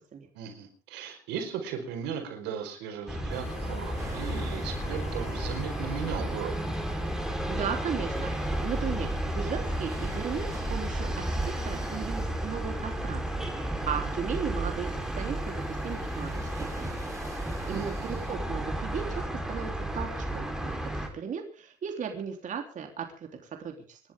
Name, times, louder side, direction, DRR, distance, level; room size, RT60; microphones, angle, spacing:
voice 1, 0.3-6.5 17.6-18.3, right 8 dB, 90° right, 5 dB, 4.7 m, -37 dB
sound 1, 3.1-21.1, right 1 dB, 5° right, 4.0 m, -33 dB
sound 2, 3.3-18.5, left 3 dB, 35° left, 6.5 m, -48 dB
sound 3, 4.0-18.4, right 2 dB, 20° right, 3.5 m, -43 dB
voice 2, 7.5-16.9 17.4-24.0, right 7 dB, 50° right, 3 dB, 3.5 m, -36 dB
28.0 x 11.5 x 3.6 m, 0.37 s
cardioid pair, 110°, 17 cm